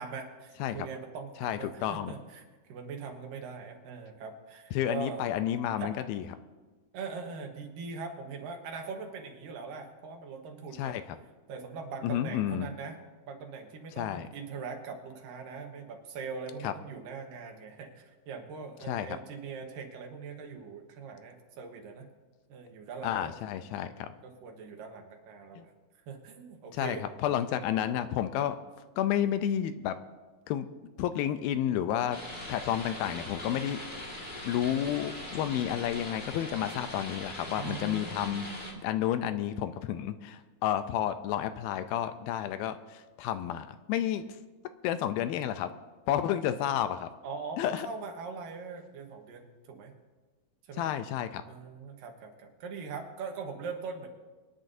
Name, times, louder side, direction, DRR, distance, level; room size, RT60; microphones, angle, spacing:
voice 1, 0.0-2.4 2.7-5.2 5.7-5.9 6.9-11.0 11.5-13.0 13.2-22.1 22.5-23.3 24.2-25.7 26.1-27.0 37.6-38.9 47.2-50.0 50.7-50.9 51.5-54.1, right 5 dB, 70° right, 3 dB, 2.8 m, -41 dB
voice 2, 1.4-2.1 4.7-6.2 10.7-11.2 12.0-12.7 14.0-14.3 16.6-16.7 18.9-19.2 23.0-24.1 25.6-25.7 26.7-28.6 29.0-30.0 30.5-30.7 31.0-32.2 32.5-33.8 34.4-38.5 38.8-44.3 44.8-45.7 46.1-47.1 47.6-47.9 50.7-51.4, left 11 dB, 80° left, 10 dB, 2.3 m, -31 dB
sound 1, 32.1-38.7, left 1 dB, 30° left, 0.9 m, -41 dB
24.5 x 10.5 x 2.7 m, 1.3 s
omnidirectional pair, 4.4 m